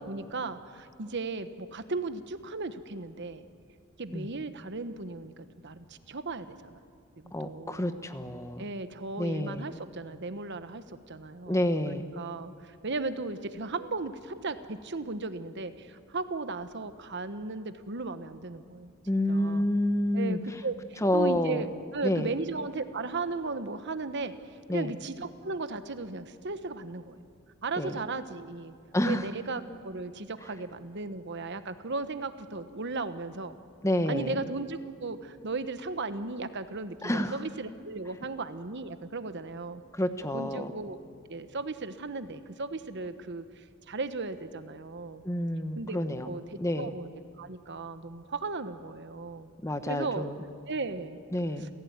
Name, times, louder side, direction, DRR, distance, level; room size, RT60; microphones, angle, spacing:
voice 1, 0.0-3.4 4.0-6.7 7.2-7.9 8.6-18.9 19.3-19.7 20.1-24.3 24.7-27.2 27.6-28.7 29.0-33.6 34.1-39.8 40.3-41.0 41.3-45.2 45.8-47.1 47.4-49.5 49.9-50.3 50.7-51.2 51.6-51.7, right 3 dB, 55° right, 11 dB, 1.1 m, -36 dB
voice 2, 7.3-8.6 9.2-9.7 11.4-12.0 19.1-20.4 21.0-21.6 22.0-22.3 24.7-24.9 27.8-28.0 28.9-29.3 33.8-34.4 37.0-37.4 39.9-40.7 45.2-46.3 46.6-46.9 49.6-50.4 51.3-51.7, left 1 dB, 15° left, 9 dB, 1.1 m, -28 dB
29.5 x 16.0 x 9.5 m, 2.2 s
head